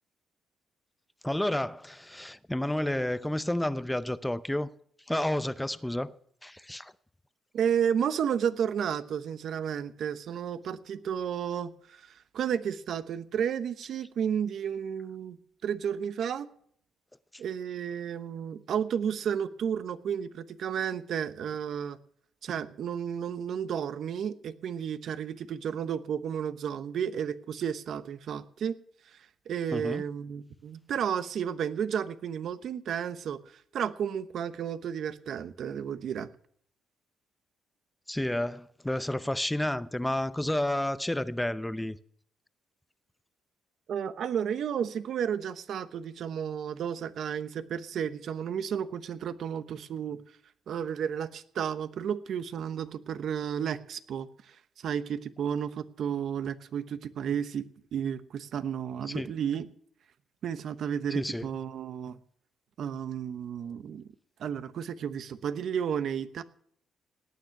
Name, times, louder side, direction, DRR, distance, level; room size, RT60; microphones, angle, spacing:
voice 1, 1.2-4.7 5.1-6.2 6.4-6.9 29.7-30.0 38.1-42.0 59.1-59.3 61.1-61.5, left 1 dB, 5° left, 0.6 m, -30 dB
voice 2, 7.5-16.5 17.4-22.0 22.4-28.8 29.1-36.3 43.9-50.2 50.7-59.7 60.4-62.2 62.8-64.0 64.4-66.4, right 8 dB, 65° right, 1.0 m, -32 dB
17.5 x 9.4 x 5.9 m
cardioid pair, 90°, 0 cm